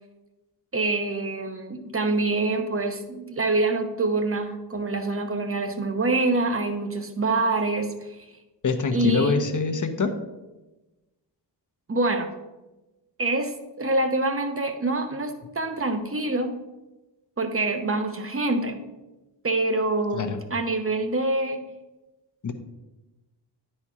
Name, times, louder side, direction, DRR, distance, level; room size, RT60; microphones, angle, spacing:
voice 1, 0.7-8.3 8.9-9.4 11.9-12.3 13.2-16.6 17.4-18.8 19.4-21.6, right 2 dB, 30° right, 6 dB, 0.9 m, -26 dB
voice 2, 8.6-10.1 20.1-20.4 22.4-22.5, left 4 dB, 45° left, 6 dB, 0.9 m, -24 dB
9.6 x 4.4 x 4.8 m, 1.1 s
wide cardioid pair, 85°, 43 cm